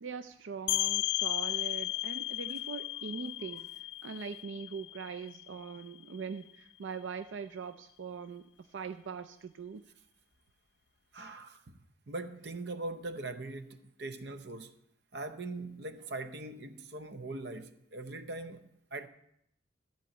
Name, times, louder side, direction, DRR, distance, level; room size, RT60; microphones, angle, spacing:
voice 1, 0.0-3.7 4.0-9.8, right 5 dB, 85° right, 0.4 m, -42 dB
sound 1, 0.7-6.2, left 17 dB, 65° left, 0.3 m, -35 dB
voice 2, 11.1-11.8 12.1-14.7 15.1-19.1, right 2 dB, 65° right, 0.8 m, -41 dB
13.0 x 4.5 x 7.8 m
head